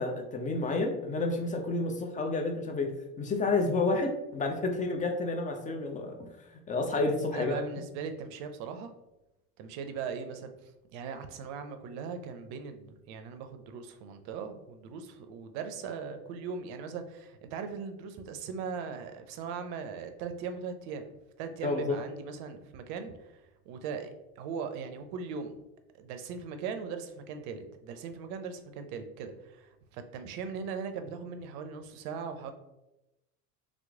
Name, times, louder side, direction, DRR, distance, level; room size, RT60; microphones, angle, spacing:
voice 1, 0.0-2.9 3.2-6.3 6.7-7.6 21.6-22.0, left 3 dB, 20° left, 3 dB, 0.5 m, -30 dB
voice 2, 7.3-8.9 9.6-10.5 10.9-21.1 21.4-24.1 24.4-25.6 26.0-32.5, right 6 dB, 55° right, 8 dB, 0.6 m, -39 dB
3.0 x 2.0 x 3.5 m, 0.94 s
hypercardioid pair, 70°, 44 cm